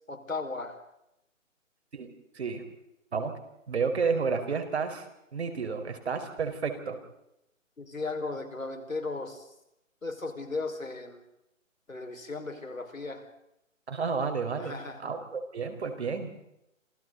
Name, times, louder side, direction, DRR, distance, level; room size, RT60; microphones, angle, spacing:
voice 1, 0.1-0.8 7.8-9.5 10.0-11.2 11.9-13.2 14.6-15.0, left 3 dB, 90° left, 6 dB, 5.5 m, -36 dB
voice 2, 3.7-5.0 5.3-7.0 13.9-16.4, right 5 dB, 55° right, 7 dB, 5.0 m, -31 dB
30.0 x 27.5 x 4.1 m, 0.84 s
figure-of-eight pair, 150°, 39 cm